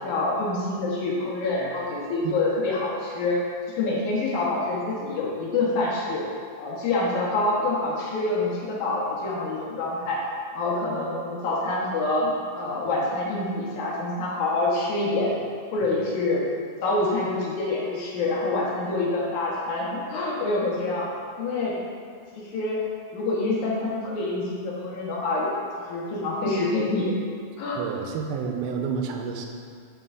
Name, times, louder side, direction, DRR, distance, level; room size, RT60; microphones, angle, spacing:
voice 1, 0.0-3.4 3.7-6.2 6.6-10.2 10.5-15.3 15.7-16.4 16.8-21.1 21.4-21.7 22.4-22.8 23.1-25.6 25.9-27.1 27.6-27.8, left 2 dB, 65° left, -5 dB, 2.4 m, -26 dB
voice 2, 27.8-29.5, right 6 dB, 85° right, 3 dB, 2.4 m, -29 dB
11.5 x 3.9 x 3.6 m, 2.2 s
omnidirectional pair, 4.4 m